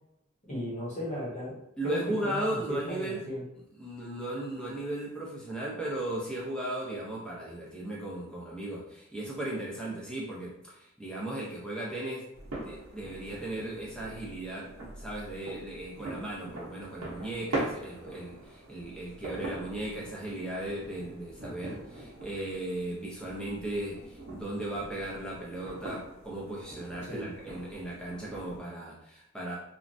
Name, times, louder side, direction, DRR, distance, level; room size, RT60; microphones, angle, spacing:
voice 1, 0.4-1.6 1.8-3.4 27.1-27.3, equal, 35° left, -6 dB, 1.0 m, -35 dB
voice 2, 1.8-3.3 3.8-12.3 12.6-29.6, right 1 dB, 5° left, -5 dB, 0.6 m, -36 dB
sound 1, 12.3-28.6, right 2 dB, 75° right, 0.8 m, -42 dB
3.1 x 2.3 x 2.6 m, 0.81 s
head